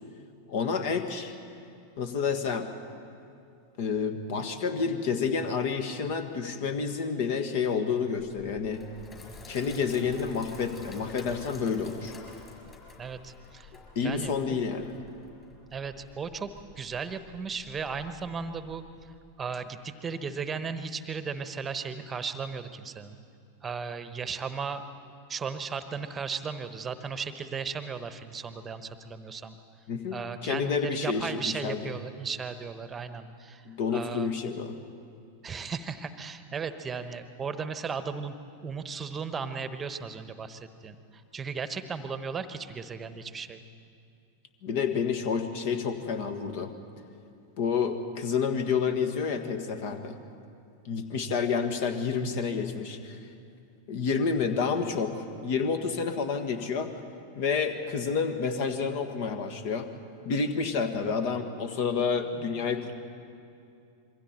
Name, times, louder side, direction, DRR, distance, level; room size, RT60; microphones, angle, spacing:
voice 1, 0.5-1.3 2.0-2.7 3.8-8.8 9.5-12.1 13.9-15.0 29.9-31.9 33.6-34.8 44.6-46.7 47.6-50.2 50.8-53.2 53.9-56.9 57.4-59.9 60.2-62.9, left 5 dB, 50° left, 9 dB, 1.6 m, -29 dB
Sink (filling or washing), 8.6-19.2, left 3 dB, 20° left, 5.2 m, -49 dB
voice 2, 13.0-13.7 14.0-14.6 15.7-16.5 16.8-18.8 19.4-23.2 23.6-24.9 25.3-29.6 30.1-33.7 33.9-34.4 35.4-38.4 38.6-43.6 61.1-61.2, right 5 dB, 20° right, 11 dB, 1.1 m, -36 dB
27.0 x 23.0 x 4.4 m, 2.5 s
figure-of-eight pair, 90°, 0 cm